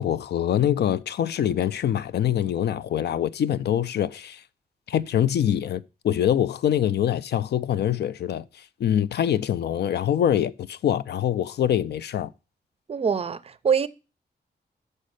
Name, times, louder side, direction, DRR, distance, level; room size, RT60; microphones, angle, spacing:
voice 1, 0.0-4.4 4.9-8.4 8.8-12.3, left 10 dB, 80° left, 0.4 m, -24 dB
voice 2, 12.9-13.9, right 6 dB, 35° right, 0.4 m, -24 dB
6.5 x 5.3 x 6.5 m
wide cardioid pair, 165°, 17 cm